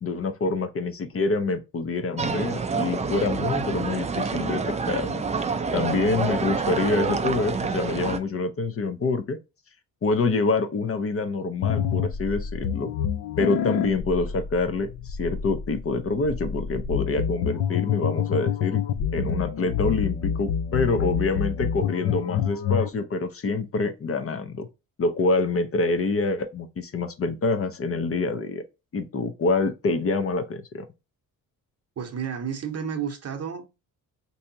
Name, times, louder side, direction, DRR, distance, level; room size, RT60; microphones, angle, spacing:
voice 1, 0.0-5.2 5.7-9.4 10.0-12.9 13.4-18.8 19.1-24.7 25.0-28.6 28.9-30.8, left 3 dB, 40° left, 0.6 m, -26 dB
sound 1, 2.2-8.2, right 4 dB, 20° right, 0.4 m, -27 dB
sound 2, 11.6-22.9, left 8 dB, 90° left, 0.6 m, -28 dB
voice 2, 32.0-33.6, right 7 dB, 45° right, 0.8 m, -31 dB
3.4 x 2.7 x 2.7 m
cardioid pair, 115°, 35 cm